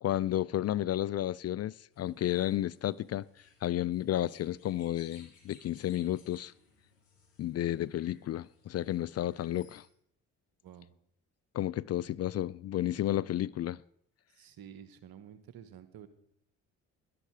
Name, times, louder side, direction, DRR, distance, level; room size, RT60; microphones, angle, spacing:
voice 1, 0.0-3.3 3.6-6.5 7.4-9.9 11.5-13.8, left 13 dB, 40° left, 0.4 m, -32 dB
sound 1, 1.9-9.9, left 4 dB, 90° left, 2.2 m, -63 dB
voice 2, 14.3-16.1, right 9 dB, 65° right, 1.5 m, -50 dB
11.5 x 11.5 x 4.8 m
hypercardioid pair, 50°, 39 cm